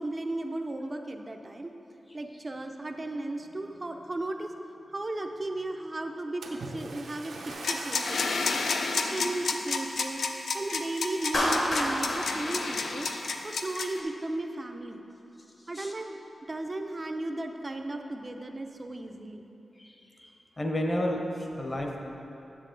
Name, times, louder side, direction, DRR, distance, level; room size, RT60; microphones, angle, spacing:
voice 1, 0.0-1.7 2.1-4.5 4.9-8.5 9.0-10.2 10.5-13.1 13.4-15.0 15.7-16.2 16.5-19.4, right 2 dB, 25° right, 5 dB, 0.4 m, -35 dB
Splash splatter, 6.4-8.5 9.1-9.3 9.9-10.0, right 3 dB, 75° right, 0.6 m, -41 dB
sound 1, 7.5-14.0, left 4 dB, 75° left, 0.4 m, -30 dB
Clapping, 11.3-13.6, left 1 dB, 60° left, 1.3 m, -30 dB
voice 2, 19.8-20.3 20.6-22.0, left 1 dB, 25° left, 1 dB, 0.7 m, -32 dB
7.4 x 7.4 x 3.8 m, 2.9 s
wide cardioid pair, 165°, 0 cm